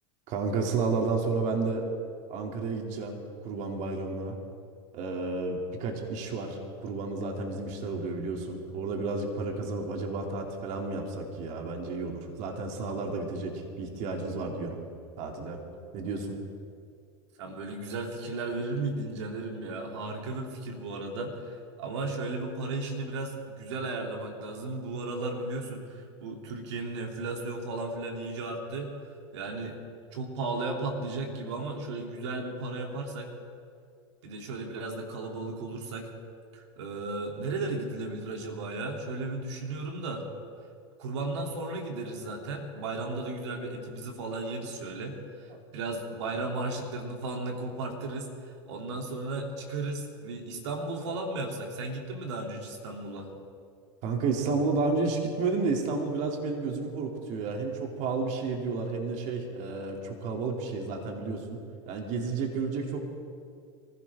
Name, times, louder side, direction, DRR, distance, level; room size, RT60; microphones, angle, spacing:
voice 1, 0.3-1.9 2.3-4.4 4.9-14.8 15.2-15.7 15.9-16.5 54.0-61.6 61.8-63.0, right 3 dB, 55° right, 2 dB, 2.9 m, -31 dB
voice 2, 17.4-21.5 21.8-28.9 29.3-29.8 30.1-33.3 34.2-36.1 36.5-40.2 41.0-48.3 48.7-53.3, right 2 dB, 75° right, 1 dB, 3.1 m, -35 dB
24.0 x 16.0 x 3.7 m, 2.3 s
hypercardioid pair, 95°, 15 cm